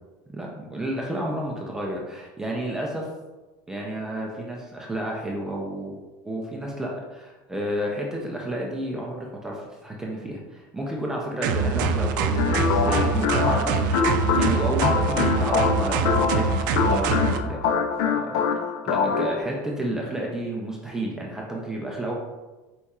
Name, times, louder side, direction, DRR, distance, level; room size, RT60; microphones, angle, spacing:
voice 1, 0.3-3.1 3.7-6.0 6.2-17.6 18.0-18.3 18.8-22.1, right 1 dB, 5° right, -3 dB, 0.3 m, -31 dB
sound 1, 11.4-17.4, right 4 dB, 80° right, 0.4 m, -24 dB
sound 2, 12.4-19.4, left 5 dB, 70° left, 0.4 m, -24 dB
4.6 x 4.1 x 2.3 m, 1.2 s
cardioid pair, 180°, 10 cm